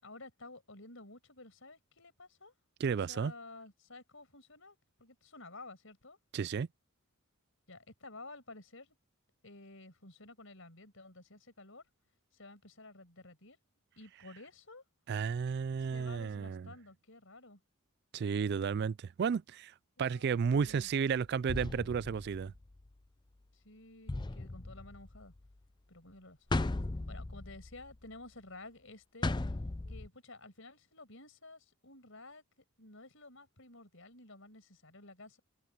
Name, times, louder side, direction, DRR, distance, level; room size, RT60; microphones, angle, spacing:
voice 1, 0.0-2.5 3.1-6.2 7.7-8.9 9.4-11.9 12.3-13.6 14.0-14.8 15.9-17.6 20.0-20.9 23.5-25.3 25.9-26.4 27.1-29.3 29.9-32.4 32.8-35.4, left 2 dB, 60° left, 6.7 m, -52 dB
voice 2, 2.8-3.3 6.3-6.7 15.1-16.7 18.1-19.7 20.0-22.5, right 6 dB, 50° right, 0.3 m, -32 dB
sound 1, 20.5-20.8 21.5-22.9 24.1-25.5 26.5-28.0 29.2-30.1, left 2 dB, 20° left, 0.5 m, -37 dB
head